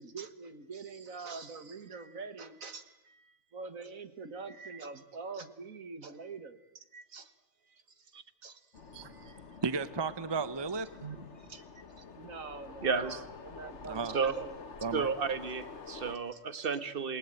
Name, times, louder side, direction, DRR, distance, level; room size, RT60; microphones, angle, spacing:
voice 1, 0.0-7.3 7.6-8.2 8.4-9.4 11.4-11.6 12.0-12.9 13.4-14.6 15.6-15.7 16.3-16.4, right 4 dB, 75° right, 10 dB, 2.1 m, -45 dB
sound 1, 8.7-16.2, left 5 dB, 55° left, 1.8 m, -48 dB
voice 2, 8.9-9.4 9.6-10.9 11.2-11.3 13.8-14.2 14.8-15.1, right 4 dB, 20° right, 14 dB, 0.9 m, -34 dB
voice 3, 12.8-13.3 14.1-14.3 14.9-17.2, right 5 dB, 45° right, 13 dB, 1.6 m, -32 dB
28.0 x 19.5 x 9.1 m, 0.93 s
omnidirectional pair, 1.4 m